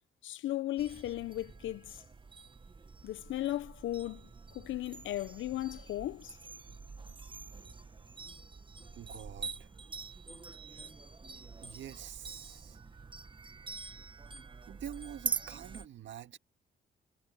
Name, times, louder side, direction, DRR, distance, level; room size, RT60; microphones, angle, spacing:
voice 1, 0.2-2.0 3.0-4.3 4.5-6.4, left 14 dB, 75° left, 0.8 m, -36 dB
sound 1, 0.8-15.9, right 5 dB, 25° right, 1.2 m, -45 dB
voice 2, 9.0-9.7 11.6-12.8 14.7-16.4, right 10 dB, 70° right, 1.8 m, -46 dB
cardioid pair, 90°, 20 cm